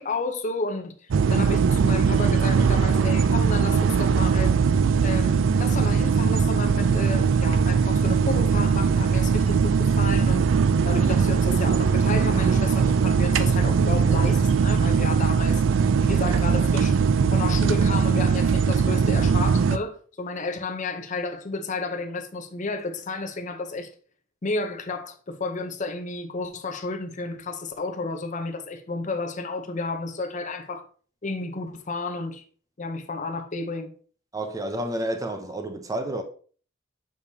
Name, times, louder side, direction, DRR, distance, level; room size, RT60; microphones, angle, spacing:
voice 1, 0.0-4.6 5.0-10.5 10.8-15.6 16.0-17.0 17.3-23.9 24.4-30.8 31.2-32.4 32.8-33.9, left 3 dB, 40° left, 0.7 m, -32 dB
sound 1, 1.1-19.8, right 5 dB, 75° right, 0.4 m, -20 dB
voice 2, 34.3-36.2, right 1 dB, 20° right, 0.6 m, -30 dB
6.9 x 4.9 x 2.8 m
head